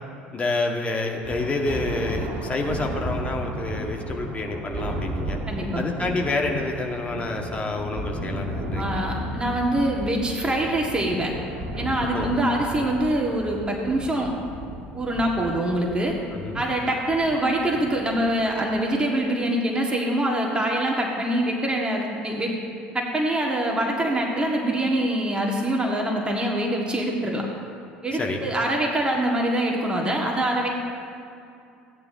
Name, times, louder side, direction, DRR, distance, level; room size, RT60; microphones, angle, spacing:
voice 1, 0.3-5.4 5.8-9.2 12.1-12.3 12.8-12.9 16.3-16.6 28.1-28.4, left 2 dB, 20° left, 2 dB, 1.4 m, -28 dB
Thunder, 1.2-18.9, right 1 dB, 55° right, 1.9 m, -34 dB
voice 2, 5.5-5.8 8.8-11.3 11.8-14.3 14.9-16.2 16.5-22.5 22.9-27.5 28.0-30.7, right 1 dB, 15° right, -1 dB, 1.6 m, -24 dB
16.5 x 9.6 x 2.7 m, 2.5 s
figure-of-eight pair, 65°, 6 cm